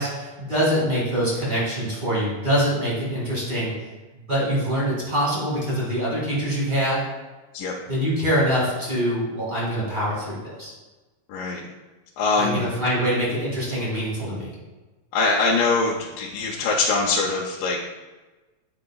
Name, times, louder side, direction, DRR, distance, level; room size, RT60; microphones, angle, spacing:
voice 1, 0.0-3.7 4.3-7.0 7.9-10.7 12.4-14.5, equal, 20° right, -7 dB, 1.7 m, -24 dB
voice 2, 11.3-11.7 12.2-12.6 15.1-17.8, left 3 dB, 85° left, -3 dB, 2.4 m, -23 dB
8.5 x 5.8 x 2.3 m, 1.2 s
omnidirectional pair, 3.9 m